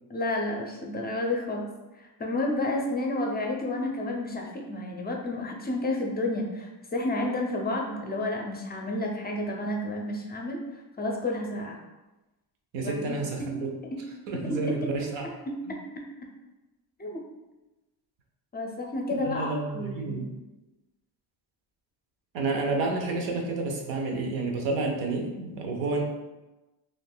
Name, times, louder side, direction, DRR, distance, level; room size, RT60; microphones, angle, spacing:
voice 1, 0.1-1.7 2.0-11.8 12.8-13.5 14.5-14.8 15.2-15.8 17.0-17.2 18.5-20.3, left 1 dB, 25° left, 0 dB, 0.5 m, -31 dB
voice 2, 12.7-13.7 14.3-15.3 19.2-20.3 22.3-26.0, right 3 dB, 85° right, 2 dB, 0.7 m, -30 dB
3.5 x 2.5 x 2.2 m, 1.1 s
cardioid pair, 90°, 43 cm